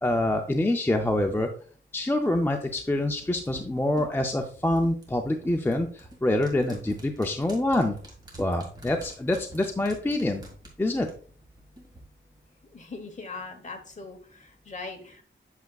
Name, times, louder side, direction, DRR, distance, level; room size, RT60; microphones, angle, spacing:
voice 1, 0.0-1.5 1.9-7.9 8.4-10.4 10.8-11.1, left 1 dB, 10° left, 4 dB, 0.4 m, -26 dB
sound 1, 2.6-12.0 12.3-12.4, right 1 dB, 20° right, 1.9 m, -48 dB
voice 2, 12.7-15.2, left 3 dB, 35° left, 5 dB, 1.0 m, -40 dB
8.1 x 6.3 x 2.3 m, 0.44 s
wide cardioid pair, 160°, 21 cm